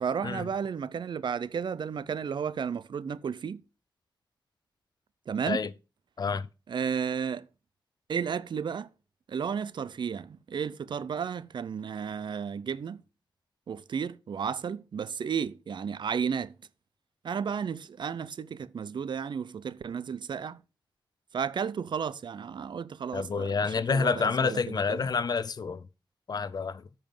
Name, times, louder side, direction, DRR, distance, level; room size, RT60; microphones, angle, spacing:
voice 1, 0.0-3.6 5.3-5.7 6.7-7.5 8.1-8.9 9.3-13.0 13.7-16.6 17.2-20.6 21.3-23.6 23.9-25.1, right 7 dB, 65° right, 0.5 m, -33 dB
voice 2, 23.1-25.9 26.3-26.8, left 5 dB, 55° left, 0.5 m, -28 dB
8.9 x 5.5 x 5.4 m
wide cardioid pair, 95°, 8 cm